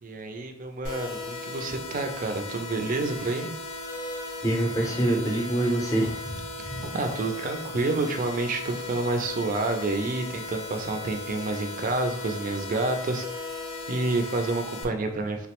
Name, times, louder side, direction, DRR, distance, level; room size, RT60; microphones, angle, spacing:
voice 1, 0.0-3.6 6.8-13.5 13.9-15.5, right 3 dB, 40° right, 5 dB, 0.4 m, -29 dB
sound 1, 0.8-14.8, left 2 dB, 65° left, 0.5 m, -37 dB
voice 2, 4.4-6.4 6.7-6.8, right 1 dB, 15° left, 0 dB, 0.6 m, -25 dB
3.5 x 2.0 x 2.9 m, 0.72 s
head